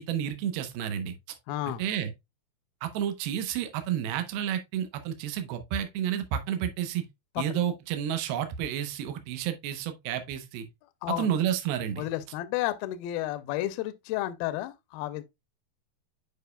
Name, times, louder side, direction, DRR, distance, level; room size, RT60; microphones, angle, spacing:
voice 1, 0.0-1.4 1.7-2.1 2.8-7.1 7.4-10.7 11.1-12.1, right 10 dB, 85° right, 2.7 m, -31 dB
voice 2, 1.5-1.8 7.4-7.5 11.0-11.3 12.0-15.2, left 14 dB, 80° left, 2.3 m, -31 dB
9.1 x 4.9 x 2.2 m
omnidirectional pair, 4.3 m